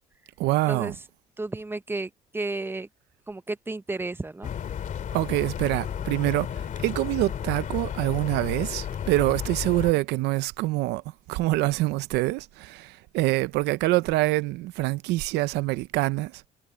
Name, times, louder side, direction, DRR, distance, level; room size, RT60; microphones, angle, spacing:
voice 1, 0.4-0.9 5.1-11.0 11.3-16.4, right 18 dB, 90° right, 0.7 m, -25 dB
voice 2, 1.4-2.9 3.3-4.5, right 2 dB, 15° right, 0.7 m, -32 dB
sound 1, 4.4-9.9, left 8 dB, 50° left, 2.6 m, -33 dB
cardioid pair, 110°, 17 cm